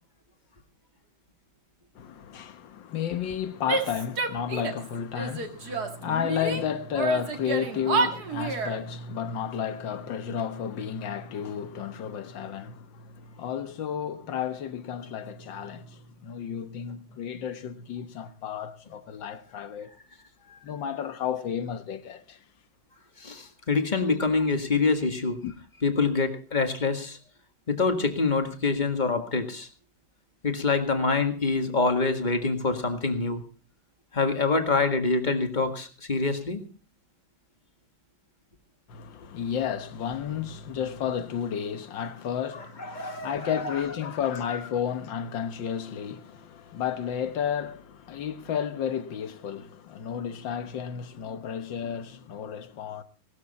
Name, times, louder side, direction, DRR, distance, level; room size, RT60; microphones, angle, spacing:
voice 1, 2.0-19.9 20.6-22.4 25.4-25.5 38.9-53.0, left 8 dB, 65° left, 1.8 m, -32 dB
Female speech woman speaking / Yell, 3.7-4.9 5.1-6.6 6.9-8.8, right 4 dB, 50° right, 2.4 m, -29 dB
voice 2, 23.2-25.4 25.8-27.2 27.7-29.7 30.4-33.4 34.1-36.6 42.8-43.7, left 4 dB, 25° left, 1.8 m, -26 dB
18.5 x 13.5 x 4.2 m
omnidirectional pair, 2.3 m